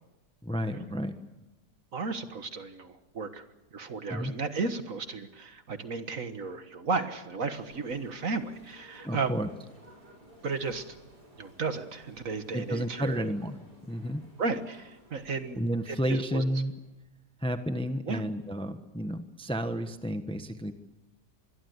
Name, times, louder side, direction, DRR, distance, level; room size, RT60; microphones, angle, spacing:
voice 1, 0.4-1.1 4.1-4.3 9.0-9.5 12.5-13.6 13.9-14.2 15.5-16.7 17.4-20.7, equal, 5° left, 8 dB, 1.1 m, -31 dB
voice 2, 1.9-3.4 3.7-9.4 10.4-11.0 11.4-13.3 14.4-15.6 15.9-16.4 18.1-18.2, right 4 dB, 55° right, 9 dB, 1.8 m, -34 dB
sound 1, 7.5-16.9, right 1 dB, 75° right, 8.5 m, -56 dB
26.0 x 21.5 x 8.1 m, 1.0 s
omnidirectional pair, 1.7 m